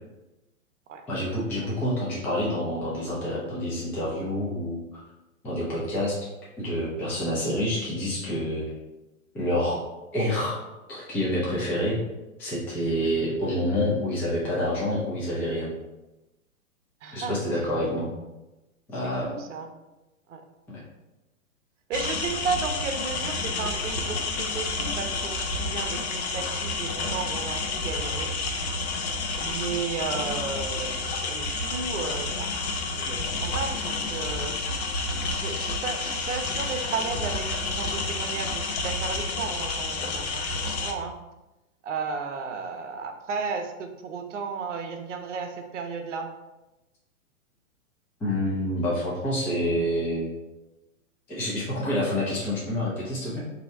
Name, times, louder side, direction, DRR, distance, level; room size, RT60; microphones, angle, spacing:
voice 1, 1.1-4.8 5.4-6.3 6.6-8.7 9.3-9.8 10.1-10.6 10.9-12.0 12.4-15.7 17.1-18.1 18.9-19.3 20.7-20.8 48.2-50.3 51.3-53.4, left 1 dB, 5° left, -7 dB, 0.4 m, -27 dB
voice 2, 17.0-17.4 19.0-19.7 20.3-20.4 21.9-28.4 29.4-34.6 35.3-41.2 41.8-46.3, right 5 dB, 60° right, 5 dB, 0.7 m, -34 dB
sound 1, 21.9-40.9, left 3 dB, 50° left, 0.7 m, -30 dB
3.1 x 2.8 x 4.1 m, 1.0 s
figure-of-eight pair, 115°, 42 cm